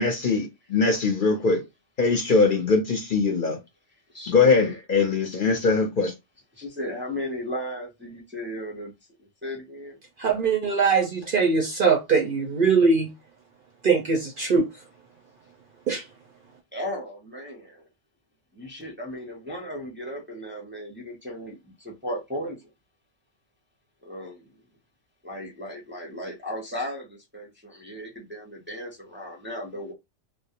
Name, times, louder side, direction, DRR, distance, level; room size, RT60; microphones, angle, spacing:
voice 1, 0.0-1.6 2.0-3.6 4.3-6.1, left 4 dB, 50° left, 0.7 m, -21 dB
voice 2, 4.1-4.7 6.5-8.9 9.4-10.0 16.7-17.9 18.5-22.7 24.0-24.5 25.2-29.9, equal, 15° right, 0.5 m, -35 dB
voice 3, 10.2-13.1 13.8-14.7 15.9-16.0, right 5 dB, 60° right, 0.6 m, -21 dB
2.3 x 2.0 x 2.8 m
omnidirectional pair, 1.3 m